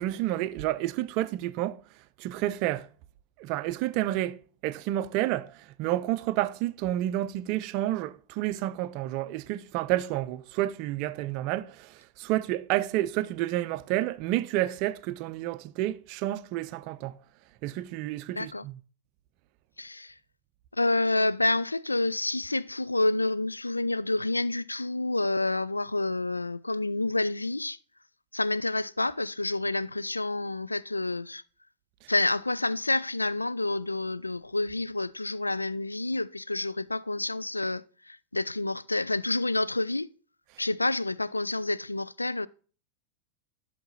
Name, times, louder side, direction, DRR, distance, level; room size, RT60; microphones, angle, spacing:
voice 1, 0.0-2.9 3.4-17.2 17.6-18.8 32.0-32.1, right 15 dB, 45° right, 0.5 m, -30 dB
voice 2, 18.3-18.6 19.8-20.2 20.7-27.8 28.3-31.4 32.1-40.1 40.6-42.5, left 2 dB, 85° left, 0.3 m, -28 dB
11.5 x 5.8 x 4.0 m
figure-of-eight pair, 90°, 0 cm